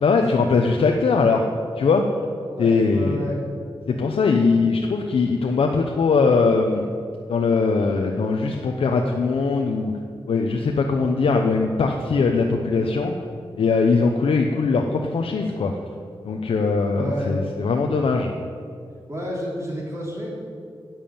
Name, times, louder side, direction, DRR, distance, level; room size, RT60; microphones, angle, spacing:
voice 1, 0.0-1.5 1.8-2.0 2.6-3.2 3.9-6.9 7.3-9.9 10.3-13.1 13.6-15.7 16.2-18.3, left 4 dB, 85° left, 2 dB, 0.8 m, -21 dB
voice 2, 2.4-3.4 16.9-17.3 19.1-20.3, equal, 30° right, -3 dB, 3.0 m, -30 dB
11.0 x 7.4 x 8.7 m, 2.3 s
wide cardioid pair, 170°, 9 cm